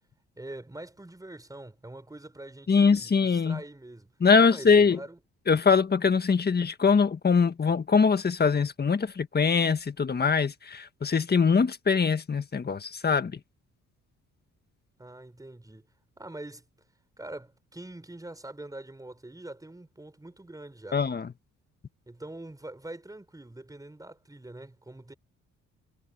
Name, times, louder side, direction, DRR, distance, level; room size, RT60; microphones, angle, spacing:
voice 1, 0.4-4.1 4.4-5.2 15.0-15.8 16.2-16.6 17.2-21.0 22.1-25.1, right 1 dB, 10° right, 5.2 m, -44 dB
voice 2, 2.7-3.6 4.2-5.0 5.5-13.4 20.9-21.3, left 5 dB, 35° left, 1.7 m, -23 dB
cardioid pair, 90°, 30 cm